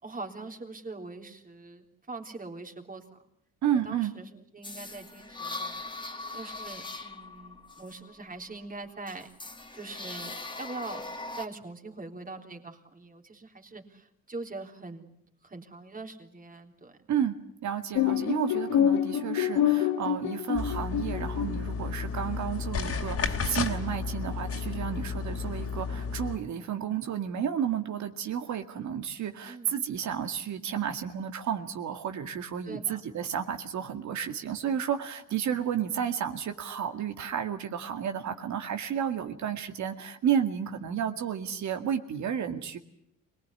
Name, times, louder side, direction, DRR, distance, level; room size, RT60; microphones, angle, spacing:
voice 1, 0.0-3.0 3.7-9.3 9.7-11.0 11.4-15.1 15.4-16.9 29.5-29.8 32.7-33.2, right 3 dB, 30° right, 4 dB, 3.7 m, -43 dB
voice 2, 3.6-4.1 17.1-42.8, right 8 dB, 70° right, 6 dB, 2.1 m, -32 dB
sound 1, 4.6-8.6 9.1-11.5, left 2 dB, 15° left, 2.1 m, -40 dB
sound 2, 18.0-21.6, left 10 dB, 80° left, 1.5 m, -27 dB
sound 3, 20.5-26.4, left 5 dB, 50° left, 3.0 m, -32 dB
25.0 x 19.0 x 9.8 m, 0.73 s
cardioid pair, 90°, 30 cm